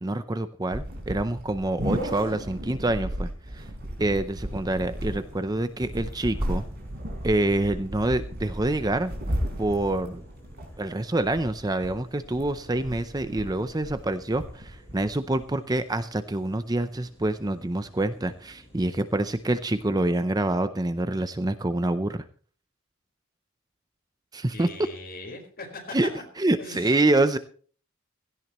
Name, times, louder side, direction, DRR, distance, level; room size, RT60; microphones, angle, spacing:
voice 1, 0.0-3.6 4.0-6.6 7.2-9.1 9.6-10.2 10.8-22.2 24.3-24.7 25.9-26.1 26.4-27.4, right 2 dB, 20° right, 11 dB, 0.6 m, -26 dB
sound 1, 0.7-15.4, equal, 50° right, 4.4 m, -35 dB
sound 2, 5.2-19.9, equal, 10° left, 6.8 m, -54 dB
voice 2, 24.5-26.1 26.6-27.0, left 2 dB, 45° left, 2 dB, 4.6 m, -40 dB
16.5 x 15.5 x 3.0 m, 0.43 s
head